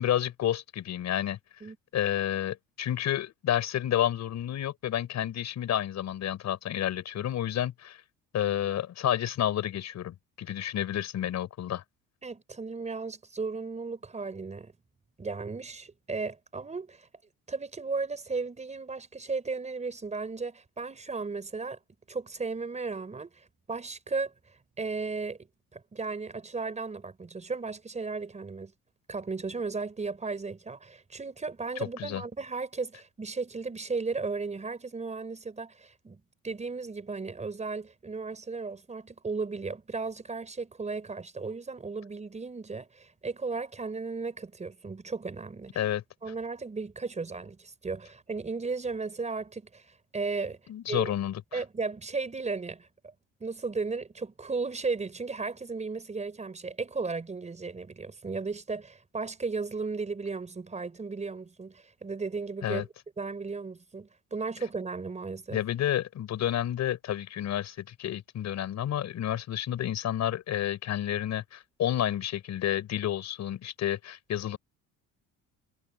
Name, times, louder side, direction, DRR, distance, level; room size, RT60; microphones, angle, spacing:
voice 1, 0.0-1.4 1.9-8.0 8.3-11.8 32.0-32.2 45.8-46.0 50.7-51.6 62.6-62.8 65.5-74.6, left 11 dB, 55° left, 6.0 m, -30 dB
voice 2, 12.2-14.7 15.2-17.1 17.5-21.8 22.1-24.3 24.8-25.4 25.7-28.7 29.1-36.2 36.4-45.8 46.2-50.6 50.9-51.1 51.5-53.1 53.4-62.9 63.2-65.6, right 4 dB, 20° right, 4.7 m, -35 dB
cardioid pair, 120°, 33 cm